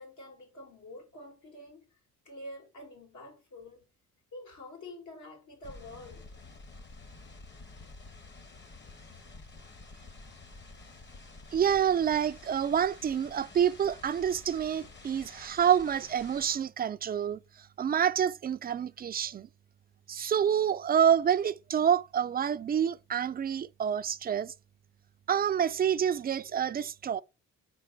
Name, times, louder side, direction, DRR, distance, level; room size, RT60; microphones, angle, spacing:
voice 1, 0.0-2.0 2.2-3.8 4.3-6.3, left 1 dB, 75° left, 3.0 m, -47 dB
sound 1, 5.6-16.6, left 3 dB, 35° left, 1.3 m, -50 dB
voice 2, 11.5-17.4 17.8-19.5 20.1-24.5 25.3-27.2, right 8 dB, 30° right, 0.4 m, -27 dB
4.5 x 4.4 x 5.8 m
cardioid pair, 90°, 30 cm